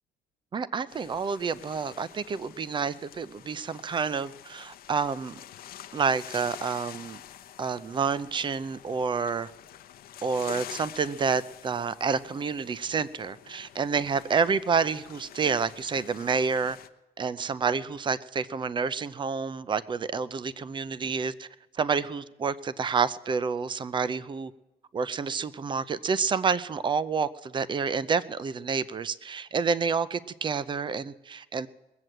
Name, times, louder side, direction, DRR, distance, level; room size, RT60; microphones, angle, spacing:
voice 1, 0.5-5.4 5.9-7.2 7.6-9.5 10.2-16.8 17.2-21.5 21.7-24.5 24.9-31.7, right 5 dB, 30° right, 17 dB, 0.6 m, -29 dB
sound 1, 0.9-16.9, left 11 dB, 60° left, 0.8 m, -47 dB
20.5 x 7.6 x 7.9 m, 1.0 s
cardioid pair, 110°, 17 cm